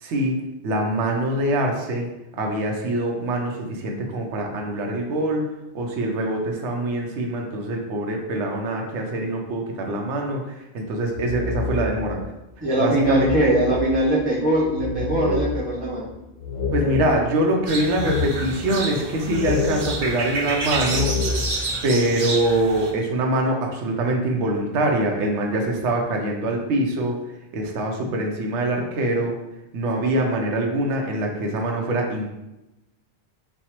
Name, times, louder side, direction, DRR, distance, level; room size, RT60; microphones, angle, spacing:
voice 1, 0.0-5.5 5.7-12.2 12.8-13.5 16.7-21.1 21.8-27.2 27.5-29.4 29.7-32.3, right 1 dB, 90° right, 1 dB, 0.9 m, -24 dB
sound 1, 10.9-12.2 12.6-12.7 12.9-17.4 18.0-18.8 19.3-21.6, left 3 dB, 75° left, 1.0 m, -28 dB
voice 2, 12.6-16.1, right 1 dB, 20° right, -6 dB, 1.1 m, -21 dB
sound 2, 17.7-22.9, right 3 dB, 50° right, 0.6 m, -29 dB
4.3 x 2.3 x 2.9 m, 0.95 s
omnidirectional pair, 1.2 m